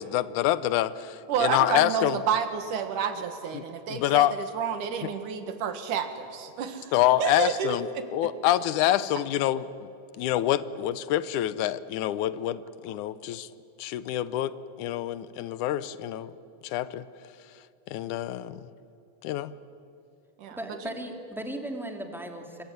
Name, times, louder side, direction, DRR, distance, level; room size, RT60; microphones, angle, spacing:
voice 1, 0.0-2.2 3.5-4.4 5.0-5.1 6.9-9.7 10.2-13.5 13.8-16.3 16.6-17.1 17.9-18.7 19.2-19.5, left 13 dB, 80° left, 16 dB, 2.2 m, -26 dB
voice 2, 1.3-6.9 7.2-8.0 20.4-20.9, right 7 dB, 85° right, 8 dB, 3.2 m, -30 dB
voice 3, 20.5-22.6, right 1 dB, ahead, 3 dB, 1.9 m, -36 dB
26.0 x 22.5 x 9.3 m, 2.7 s
omnidirectional pair, 3.5 m